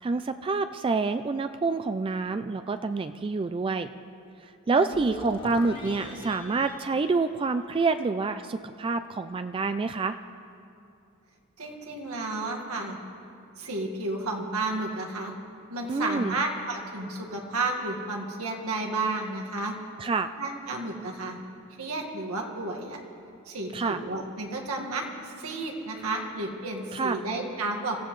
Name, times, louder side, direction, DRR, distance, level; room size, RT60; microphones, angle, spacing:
voice 1, 0.0-3.9 4.7-10.2 15.9-16.4 20.0-20.3 23.7-24.0 26.9-27.2, right 4 dB, 25° right, 10 dB, 0.3 m, -27 dB
sound 1, 4.7-8.0, left 1 dB, 25° left, 1.5 m, -41 dB
voice 2, 11.6-13.0 13.6-15.3 15.7-19.7 20.4-21.4 21.8-23.0 23.4-28.0, right 2 dB, 90° right, 1 dB, 1.8 m, -32 dB
26.0 x 15.0 x 3.2 m, 2.6 s
head